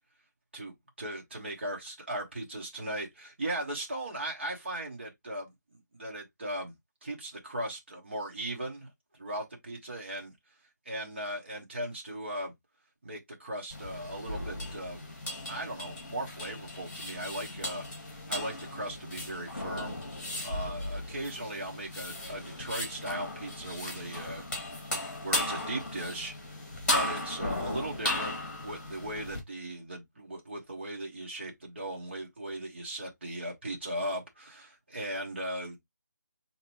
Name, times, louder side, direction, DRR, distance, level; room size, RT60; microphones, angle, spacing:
voice 1, 0.5-6.7 7.0-8.9 9.1-10.3 10.8-12.5 13.0-15.0 15.4-17.8 18.3-20.0 20.4-24.9 25.2-26.3 26.8-28.3 28.6-35.8, right 1 dB, 35° right, 1.0 m, -38 dB
sound 1, 13.7-29.4, left 1 dB, 30° left, 1.8 m, -36 dB
4.5 x 2.9 x 2.9 m
figure-of-eight pair, 180°, 10 cm